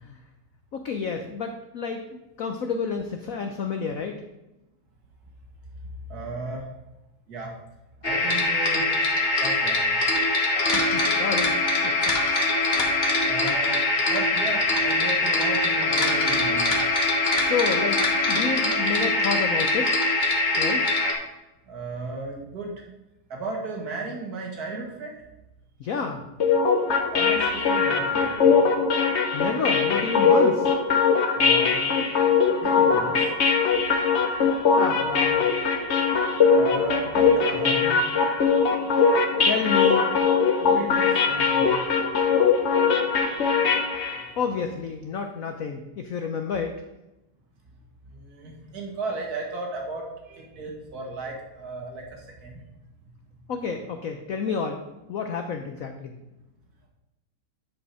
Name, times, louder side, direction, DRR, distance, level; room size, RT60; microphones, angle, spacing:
voice 1, 0.7-4.2 10.6-11.5 11.8-11.9 17.4-18.0 18.3-19.9 20.6-20.9 25.8-26.2 29.3-30.7 34.8-35.5 39.4-40.0 40.6-41.0 44.3-46.8 53.5-54.8 55.1-56.1, left 5 dB, 85° left, 5 dB, 0.7 m, -30 dB
voice 2, 6.1-6.7 7.3-7.5 8.0-8.9 9.4-9.9 13.3-16.7 21.7-22.7 23.3-25.2 27.1-28.5 31.4-32.0 32.5-33.3 36.5-38.0 40.7-41.7 48.1-52.6, right 3 dB, 45° right, 0 dB, 2.3 m, -35 dB
sound 1, 8.0-21.1, left 2 dB, 30° left, 1.1 m, -23 dB
sound 2, 26.4-44.3, left 5 dB, 55° left, 0.7 m, -21 dB
10.0 x 5.1 x 4.8 m, 0.97 s
omnidirectional pair, 2.3 m